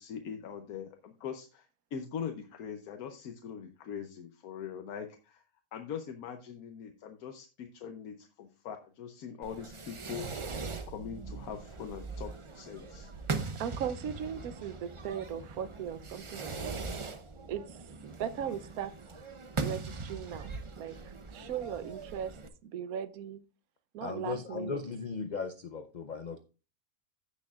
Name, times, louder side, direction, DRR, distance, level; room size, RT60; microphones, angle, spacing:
voice 1, 0.0-5.4 5.7-10.3 10.9-13.1, left 7 dB, 85° left, 6 dB, 1.3 m, -42 dB
Fireworks, 9.4-22.5, right 4 dB, 35° right, 0.5 m, -40 dB
voice 2, 13.5-16.7 17.5-17.8 18.0-18.9 19.6-20.9 21.3-22.3 22.6-23.4 23.9-24.8, right 8 dB, 80° right, 13 dB, 1.2 m, -38 dB
voice 3, 24.0-26.4, left 5 dB, 50° left, 8 dB, 0.5 m, -37 dB
15.5 x 6.4 x 2.4 m, 0.33 s
omnidirectional pair, 1.5 m